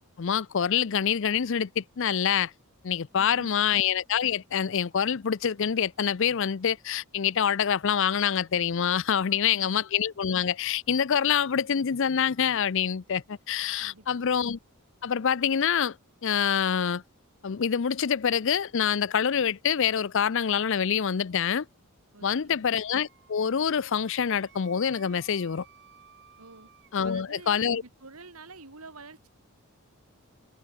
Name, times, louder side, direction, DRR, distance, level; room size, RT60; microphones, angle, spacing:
voice 1, 0.2-2.5 2.8-14.6 15.0-16.0 16.2-17.0 17.4-21.7 22.2-25.6 26.9-27.8, left 8 dB, 60° left, 0.5 m, -26 dB
voice 2, 3.2-3.7 9.2-9.8 13.8-14.3 22.1-22.7 26.4-26.7 27.0-29.3, right 3 dB, 85° right, 3.4 m, -49 dB
Wind instrument woodwind instrument, 22.8-26.9, right 7 dB, 50° right, 2.6 m, -57 dB
head